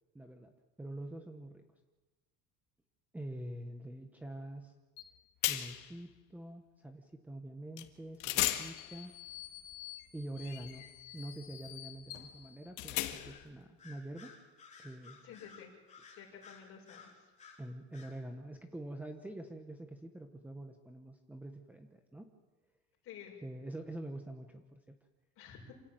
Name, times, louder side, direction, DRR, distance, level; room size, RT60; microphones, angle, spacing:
voice 1, 0.1-0.5 0.8-1.6 3.1-4.7 5.5-9.1 10.1-14.4 14.8-15.2 17.6-22.3 23.4-25.0, right 1 dB, 5° right, 5 dB, 1.2 m, -45 dB
sound 1, 5.0-5.1 5.4-5.9 7.8-7.9 8.2-13.5, left 15 dB, 90° left, 1.9 m, -38 dB
Bird vocalization bird call bird song, 13.1-13.5 13.8-17.6 17.9-18.2, left 5 dB, 20° left, 4.1 m, -56 dB
voice 2, 15.2-15.7 16.1-17.1 23.0-23.3 25.4-25.7, left 8 dB, 45° left, -1 dB, 6.6 m, -51 dB
27.5 x 17.0 x 9.2 m, 1.2 s
cardioid pair, 175°, 31 cm